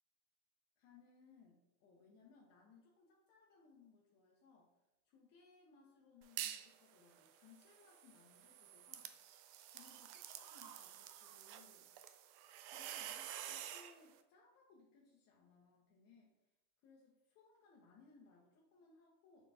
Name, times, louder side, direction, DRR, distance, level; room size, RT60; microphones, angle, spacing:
voice 1, 0.8-4.8 5.0-9.2 9.4-11.9 12.7-16.3 16.8-19.5, left 4 dB, 40° left, -3 dB, 0.9 m, -66 dB
sound 1, 6.2-6.7 7.1-13.9, right 11 dB, 50° right, 0.5 m, -49 dB
4.3 x 4.0 x 2.7 m, 0.96 s
supercardioid pair, 120°, 38 cm